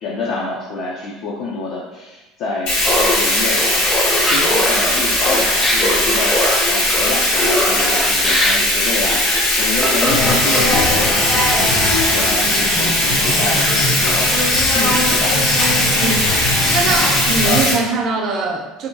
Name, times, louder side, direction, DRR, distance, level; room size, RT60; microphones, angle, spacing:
voice 1, 0.0-3.6 4.0-14.3 14.7-15.4, left 3 dB, 60° left, -4 dB, 0.4 m, -27 dB
Bathtub (filling or washing), 2.7-17.7, left 1 dB, 80° left, 1.2 m, -18 dB
Laughter, 2.8-10.9, left 1 dB, 10° left, 0.5 m, -21 dB
sound 1, 10.1-17.6, left 1 dB, 40° left, 0.8 m, -21 dB
voice 2, 16.7-18.9, right 3 dB, 45° right, 2 dB, 0.4 m, -21 dB
2.7 x 2.2 x 2.6 m, 1.1 s
supercardioid pair, 120°, 0 cm